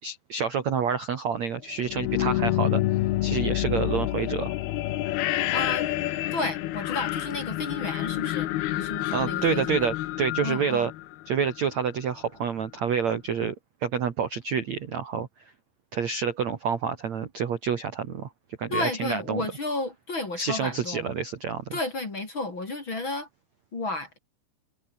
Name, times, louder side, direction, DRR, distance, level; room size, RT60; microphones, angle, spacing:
voice 1, 0.0-2.8 3.2-4.5 9.1-10.9 11.3-13.5 13.8-15.3 15.9-18.3 18.6-19.4 20.4-21.7, right 6 dB, 55° right, 2.1 m, -28 dB
sound 1, 1.8-11.7, left 15 dB, 75° left, 2.4 m, -28 dB
voice 2, 5.5-5.9 6.3-8.5 8.7-9.9 10.4-10.9 18.7-21.1 21.7-23.3 23.7-24.2, left 2 dB, 25° left, 3.6 m, -32 dB
omnidirectional pair, 5.7 m